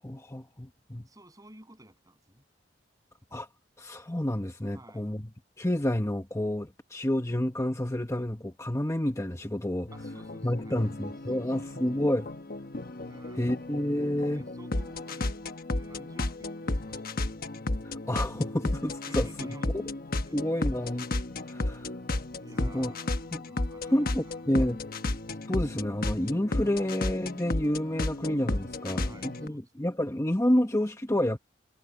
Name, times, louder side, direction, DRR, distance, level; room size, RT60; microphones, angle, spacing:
voice 1, 0.0-1.0 3.3-3.5 3.8-5.3 5.6-9.9 10.4-12.3 13.4-14.4 17.8-19.3 19.7-19.8 20.3-21.1 21.5-21.9 22.6-22.9 23.3-23.4 23.9-24.8 25.5-31.4, left 1 dB, 15° left, 1.1 m, -29 dB
voice 2, 1.1-2.4 4.7-5.2 9.9-10.9 11.3-11.7 13.0-13.4 14.0-15.4 15.7-17.3 19.1-19.9 20.3-20.8 21.5-21.9 22.3-24.4 28.9-29.9, right 1 dB, 20° right, 7.4 m, -53 dB
sound 1, 9.9-29.5, left 2 dB, 50° left, 1.2 m, -33 dB
head